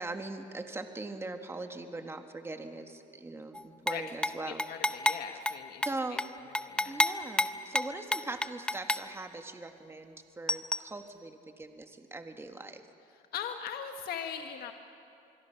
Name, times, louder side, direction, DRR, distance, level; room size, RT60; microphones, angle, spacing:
voice 1, 0.0-4.6 5.8-6.2 6.9-12.8, right 2 dB, 15° right, 6 dB, 1.5 m, -41 dB
sound 1, 3.5-4.3 4.6-5.2 5.5-5.6 5.8-6.3 6.5-9.0 10.5-10.8, left 2 dB, 5° left, 0.7 m, -29 dB
voice 2, 4.4-6.2 6.5-7.0 13.1-14.7, left 8 dB, 65° left, 5 dB, 1.3 m, -40 dB
25.5 x 22.0 x 5.8 m, 2.6 s
cardioid pair, 110°, 17 cm